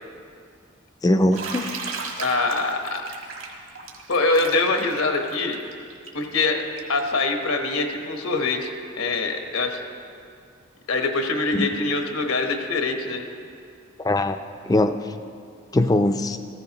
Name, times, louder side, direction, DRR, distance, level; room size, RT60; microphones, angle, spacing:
voice 1, 1.0-1.7 11.5-11.7 14.0-14.4 14.7-14.9 15.7-16.4, left 1 dB, 15° left, 9 dB, 0.3 m, -20 dB
Bathtub (filling or washing), 1.3-7.0, right 4 dB, 65° right, 1.5 m, -35 dB
voice 2, 2.2-3.1 4.1-5.6 6.1-6.6 6.9-9.8 10.9-13.2, left 3 dB, 85° left, 4 dB, 1.1 m, -24 dB
15.0 x 14.0 x 2.9 m, 2.4 s
head